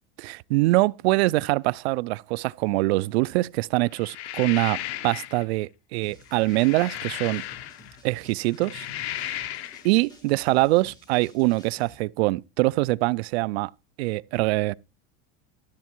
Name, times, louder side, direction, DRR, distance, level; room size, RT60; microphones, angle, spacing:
voice 1, 0.2-7.4 8.0-8.9 9.2-9.5 9.8-13.7 14.0-14.7, right 21 dB, 85° right, 0.6 m, -24 dB
sound 1, 4.0-5.4 6.3-8.0 8.5-9.9, left 14 dB, 90° left, 1.5 m, -35 dB
sound 2, 6.0-11.9, left 2 dB, 15° left, 4.0 m, -52 dB
13.5 x 8.2 x 4.5 m
cardioid pair, 175°, 31 cm